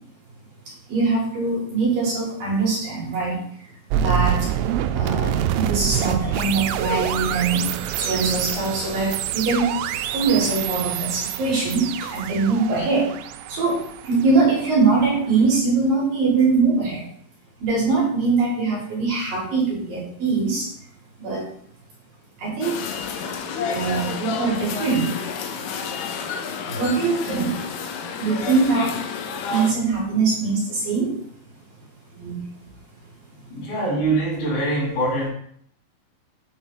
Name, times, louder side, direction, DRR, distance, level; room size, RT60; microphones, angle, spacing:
voice 1, 0.9-3.4 3.9-4.5 4.9-7.6 7.9-9.7 10.1-13.1 13.5-17.0 17.6-20.7 21.2-21.5 22.4-22.8 23.7-25.1 26.8-27.5 28.2-29.0 29.5-31.1 32.2-32.4, right 4 dB, 55° right, -5 dB, 3.3 m, -22 dB
sound 1, 3.9-14.9, right 10 dB, 90° right, 3.0 m, -26 dB
sound 2, 22.6-29.7, left 5 dB, 90° left, 2.3 m, -30 dB
voice 2, 33.5-35.3, right 2 dB, 70° left, -7 dB, 5.2 m, -23 dB
9.4 x 3.9 x 4.0 m, 0.63 s
omnidirectional pair, 5.4 m